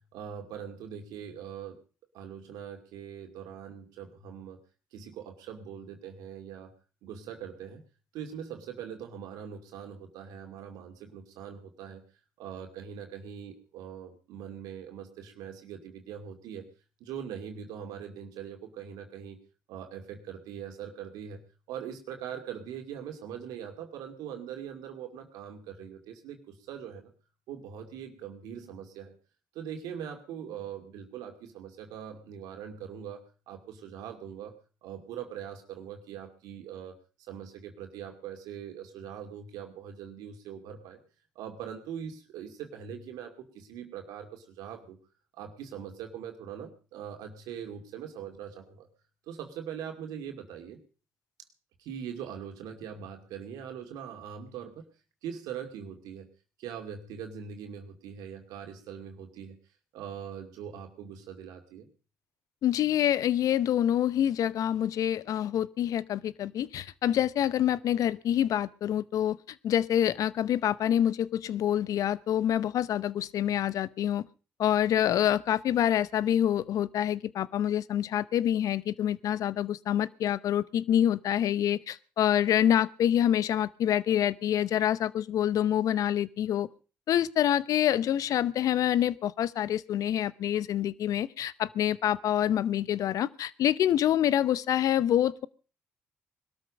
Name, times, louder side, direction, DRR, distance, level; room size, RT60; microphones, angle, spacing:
voice 1, 0.1-1.8 2.1-4.6 4.9-6.7 7.0-7.8 8.1-12.0 12.4-16.7 17.0-19.4 19.7-21.4 21.7-27.1 27.5-29.1 29.5-34.5 34.8-37.0 37.3-41.0 41.4-45.0 45.3-48.9 49.3-50.8 51.8-54.8 55.2-56.3 56.6-59.6 59.9-61.9, right 8 dB, 75° right, 4 dB, 2.4 m, -42 dB
voice 2, 62.6-69.4 69.6-74.2 74.6-86.7 87.1-95.5, left 10 dB, 65° left, 19 dB, 0.8 m, -26 dB
20.5 x 13.0 x 5.2 m, 0.38 s
hypercardioid pair, 50°, 6 cm